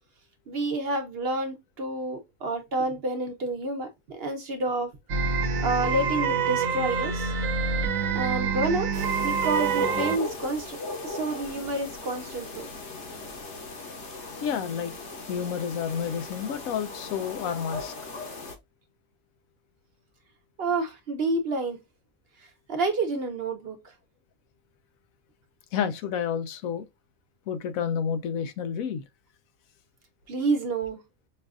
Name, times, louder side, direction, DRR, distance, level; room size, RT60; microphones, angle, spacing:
voice 1, 0.5-4.9 5.6-7.3 8.1-8.9 9.2-10.8 11.0-12.7 20.6-21.8 22.7-23.8 30.3-31.0, right 2 dB, 50° right, 0.9 m, -29 dB
sound 1, 5.1-10.2, right 5 dB, 75° right, 1.1 m, -26 dB
sound 2, 8.9-18.6, left 2 dB, 60° left, 1.1 m, -38 dB
voice 2, 14.4-15.0 15.3-17.9 25.7-26.8 27.5-29.0, left 7 dB, 85° left, 1.0 m, -30 dB
5.5 x 2.4 x 2.3 m
omnidirectional pair, 1.4 m